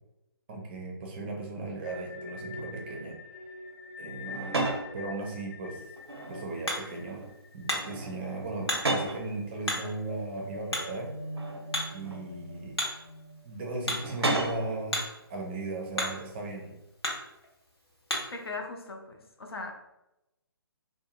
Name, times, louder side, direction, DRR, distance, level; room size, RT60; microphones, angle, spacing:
voice 1, 0.5-3.2 4.0-4.7 4.9-5.8 6.3-7.2 7.5-11.1 11.9-12.8 13.4-15.0 15.3-16.7, right 2 dB, 25° right, 0 dB, 0.5 m, -37 dB
sound 1, 1.8-8.7 9.0-9.1 9.6-15.0, left 1 dB, 20° left, 0.7 m, -44 dB
sound 2, 4.2-4.9 6.0-6.7 7.0-7.4 7.7-9.3 10.1-10.2 11.3-12.3 14.0-14.7, right 2 dB, 85° right, 0.5 m, -33 dB
Hammer, 5.8-18.5, left 1 dB, 85° left, 0.9 m, -38 dB
voice 2, 18.3-19.7, left 3 dB, 70° left, 3 dB, 0.6 m, -39 dB
2.6 x 2.1 x 2.9 m, 0.93 s
figure-of-eight pair, 140°, 13 cm